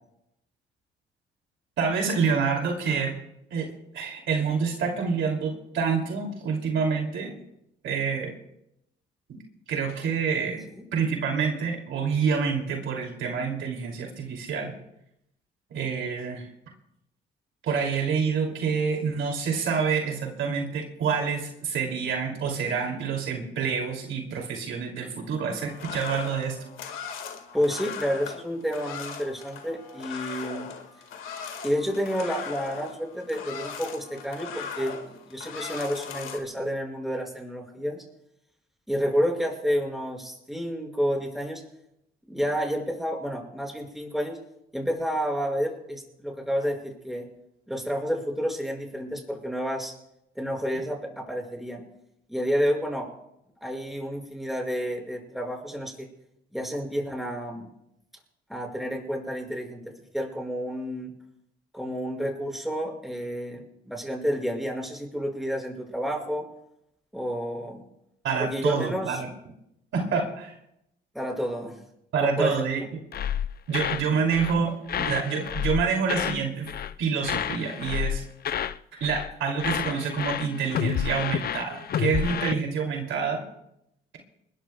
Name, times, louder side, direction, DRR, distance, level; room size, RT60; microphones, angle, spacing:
voice 1, 1.8-3.1 3.5-7.3 7.8-8.3 9.3-9.4 9.7-10.6 10.9-14.7 15.7-16.4 17.6-26.7 68.2-69.3 69.9-70.5 72.1-73.0 73.7-76.7 77.0-78.2 79.0-83.4, right 6 dB, 75° right, 2 dB, 2.8 m, -27 dB
sound 1, 25.5-36.4, left 6 dB, 85° left, 1.9 m, -39 dB
voice 2, 27.5-30.7 31.6-38.0 38.9-41.6 42.3-44.4 44.7-47.3 47.7-49.9 50.3-51.8 52.3-53.1 53.6-56.1 56.5-57.7 58.5-59.8 60.1-61.1 61.7-66.4 67.1-67.8 68.4-69.2 71.1-71.8 72.2-72.9, equal, ahead, 0 dB, 6.1 m, -30 dB
sound 2, 73.1-74.1 74.3-74.6 74.9-76.4 76.7-77.0 77.2-78.8 79.0-79.3 79.6-82.5, left 9 dB, 50° left, 0.6 m, -30 dB
25.5 x 21.5 x 2.3 m, 0.81 s
cardioid pair, 90°, 20 cm